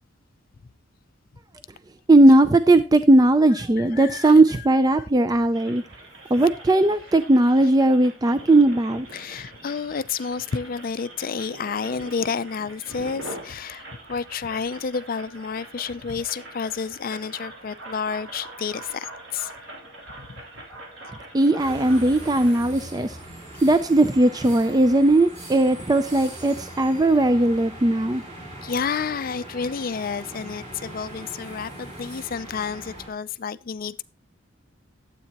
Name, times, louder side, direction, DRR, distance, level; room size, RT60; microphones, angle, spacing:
voice 1, 2.1-5.8 6.3-9.1 21.3-23.2 23.6-28.2, right 2 dB, 20° right, 0.4 m, -18 dB
voice 2, 3.5-5.1 9.1-19.1 19.3-19.5 20.2-20.4 23.7-23.8 28.6-34.0, left 6 dB, 45° left, 0.4 m, -30 dB
sound 1, 5.5-22.6, right 1 dB, 65° right, 3.3 m, -43 dB
sound 2, 21.6-33.1, right 1 dB, 35° right, 3.2 m, -40 dB
12.0 x 8.3 x 2.9 m
head